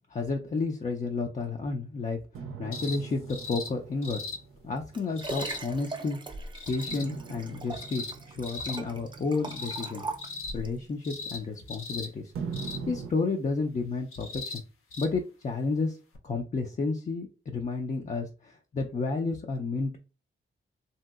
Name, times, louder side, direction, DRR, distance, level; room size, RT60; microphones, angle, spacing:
voice 1, 0.1-2.2 2.6-4.2 4.6-10.0 10.5-12.3 12.9-14.6 15.0-16.0 16.2-20.0, left 3 dB, 35° left, 2 dB, 0.4 m, -31 dB
sound 1, 2.3-6.0 6.9-11.9 12.3-13.1, right 5 dB, 85° right, 0.5 m, -42 dB
sound 2, 2.7-3.0 3.3-3.7 4.0-4.4 5.2-5.6 6.5-7.0 7.7-8.1 8.4-8.8 9.4-9.9 10.2-10.5 11.0-11.4 11.7-12.1 12.5-12.8 14.1-14.6 14.9-15.1 16.1-16.2, left 4 dB, 85° left, 0.6 m, -38 dB
Liquid, 4.5-10.8 11.4-11.5, right 3 dB, 20° right, 0.4 m, -40 dB
3.0 x 2.7 x 2.3 m, 0.33 s
cardioid pair, 85°, 21 cm